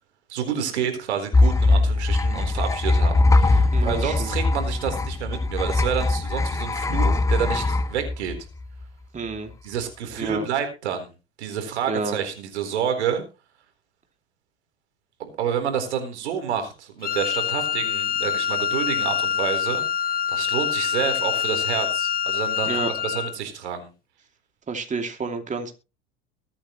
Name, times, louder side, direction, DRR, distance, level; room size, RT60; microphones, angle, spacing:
voice 1, 0.3-8.3 9.6-11.1 11.4-13.2 15.2-19.9 20.3-23.9, right 8 dB, 85° right, 6 dB, 4.1 m, -29 dB
sound 1, 1.3-8.8, left 2 dB, 10° left, 0.6 m, -21 dB
voice 2, 3.7-4.3 9.1-9.5 10.2-10.4 11.9-12.2 22.7-22.9 24.7-25.7, right 4 dB, 20° right, 4 dB, 2.8 m, -29 dB
Wind instrument woodwind instrument, 17.0-23.4, left 9 dB, 25° left, 0.9 m, -25 dB
22.5 x 8.8 x 3.2 m, 0.31 s
hypercardioid pair, 95°, 33 cm